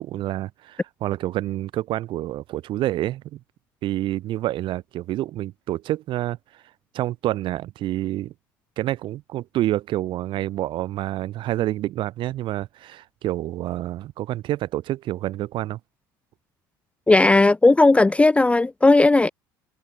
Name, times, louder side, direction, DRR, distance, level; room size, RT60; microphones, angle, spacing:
voice 1, 0.0-3.4 3.8-6.4 6.9-8.3 8.8-15.8, right 14 dB, 55° right, 0.9 m, -28 dB
voice 2, 17.1-19.3, left 2 dB, 10° left, 0.6 m, -16 dB
hypercardioid pair, 75°, 10 cm